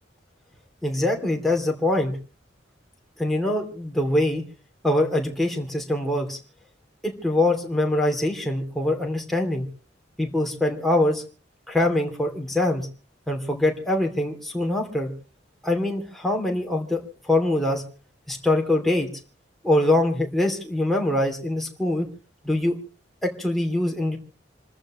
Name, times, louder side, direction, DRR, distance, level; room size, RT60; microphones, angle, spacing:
voice 1, 0.8-2.1 3.2-4.4 4.8-6.4 7.0-9.7 10.2-11.2 11.7-12.8 13.3-15.1 15.6-17.8 18.3-19.1 19.6-22.1 22.4-22.8 23.2-24.2, left 1 dB, ahead, 0 dB, 2.8 m, -23 dB
28.0 x 14.0 x 3.1 m, 0.37 s
head